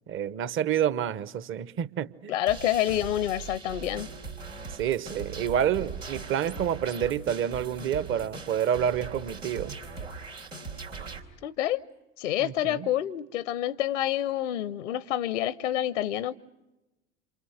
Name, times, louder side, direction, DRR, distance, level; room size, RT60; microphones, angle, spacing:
voice 1, 0.1-2.3 4.8-9.7 12.4-12.9, right 9 dB, 35° right, 1.0 m, -28 dB
voice 2, 2.3-4.1 11.4-11.8 12.2-16.3, left 12 dB, 75° left, 0.8 m, -28 dB
sound 1, 2.5-11.2, right 4 dB, 85° right, 3.3 m, -40 dB
28.0 x 28.0 x 6.7 m
figure-of-eight pair, 75°, 37 cm